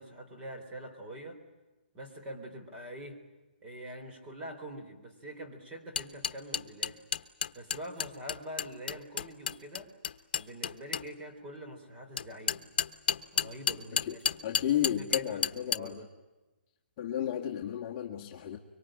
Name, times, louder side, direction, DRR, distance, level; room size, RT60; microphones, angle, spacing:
voice 1, 0.0-1.4 1.9-3.2 3.6-7.0 7.5-9.9 10.4-12.6 13.3-14.1 15.1-16.1, equal, 15° right, 2 dB, 3.8 m, -44 dB
sound 1, 6.0-11.0 12.2-15.8, left 7 dB, 60° left, 1.2 m, -31 dB
voice 2, 14.4-16.0 17.0-18.6, left 10 dB, 25° left, -1 dB, 1.7 m, -33 dB
25.0 x 24.0 x 9.0 m, 1.1 s
hypercardioid pair, 165°, 6 cm